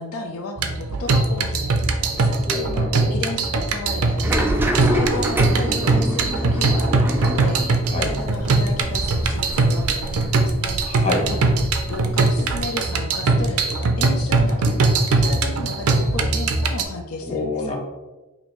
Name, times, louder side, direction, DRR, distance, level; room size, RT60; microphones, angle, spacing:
voice 1, 0.0-2.4 3.1-4.5 4.8-10.8 11.2-11.6 11.9-17.7, left 2 dB, 80° left, 3 dB, 0.5 m, -33 dB
sound 1, 0.6-16.8, right 3 dB, 90° right, 0.5 m, -21 dB
voice 2, 2.4-3.1 7.9-8.2 10.8-11.3 17.3-17.7, left 2 dB, 30° left, -1 dB, 0.9 m, -26 dB
sound 2, 4.2-11.0 11.2-12.6, right 1 dB, 10° right, 0.3 m, -27 dB
5.1 x 2.7 x 3.0 m, 1.1 s
head